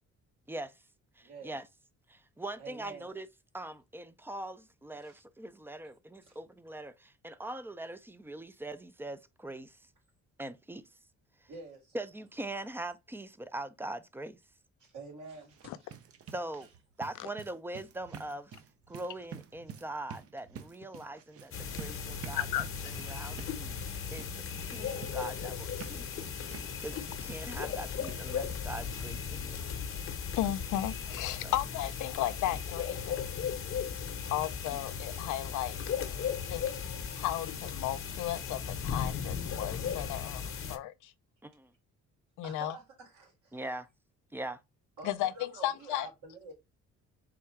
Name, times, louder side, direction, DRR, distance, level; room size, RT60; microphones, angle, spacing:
voice 1, 0.5-0.8 1.2-1.7 2.1-3.3 3.5-9.9 10.4-10.9 11.4-11.5 11.9-14.4 16.3-16.7 17.0-18.5 18.9-29.6 31.4-31.5 34.7-34.8 41.4-41.7 43.5-43.9 44.3-44.6, right 1 dB, 5° right, 0.4 m, -42 dB
voice 2, 1.2-1.6 2.6-3.1 4.9-5.2 6.3-6.4 11.5-12.0 14.8-15.9 42.4-43.6 45.0-46.5, right 3 dB, 75° right, 2.4 m, -48 dB
sound 1, 15.5-28.7 29.0-29.1 29.5-29.6 30.0-30.1, right 7 dB, 50° right, 0.6 m, -49 dB
sound 2, 21.5-40.8, left 7 dB, 45° left, 0.8 m, -37 dB
voice 3, 22.5-22.9 30.3-33.6 34.3-35.8 36.5-36.6 37.1-41.1 42.4-42.7 45.0-45.3 45.6-46.1, left 13 dB, 85° left, 0.5 m, -34 dB
3.7 x 2.3 x 4.4 m
cardioid pair, 90°, 30 cm